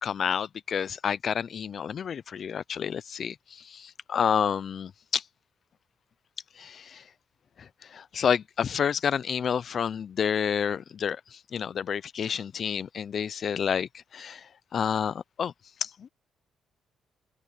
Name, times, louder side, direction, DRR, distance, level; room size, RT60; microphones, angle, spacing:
voice 1, 0.0-5.2 6.6-7.0 7.9-14.4 14.7-15.5 15.8-16.1, left 7 dB, 55° left, 0.4 m, -29 dB
open air
cardioid pair, 90°, 0 cm